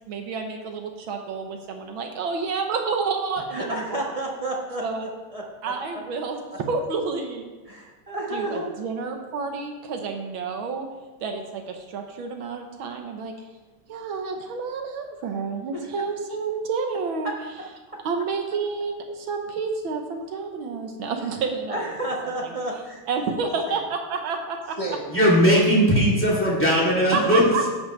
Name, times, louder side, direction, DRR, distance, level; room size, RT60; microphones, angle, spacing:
voice 1, 0.1-4.1 4.8-5.1 5.6-7.4 8.3-10.9 11.2-13.3 13.9-17.3 18.0-21.8 23.1-24.8 27.1-27.7, right 4 dB, 70° right, 4 dB, 1.6 m, -29 dB
voice 2, 3.5-5.7 7.7-8.8 15.7-15.9 21.7-23.0 23.6-23.8 24.8-25.0 26.8-26.9, right 1 dB, 25° right, -2 dB, 0.9 m, -31 dB
voice 3, 25.1-27.5, equal, 5° left, -6 dB, 2.5 m, -18 dB
12.5 x 8.3 x 3.2 m, 1.3 s
omnidirectional pair, 2.4 m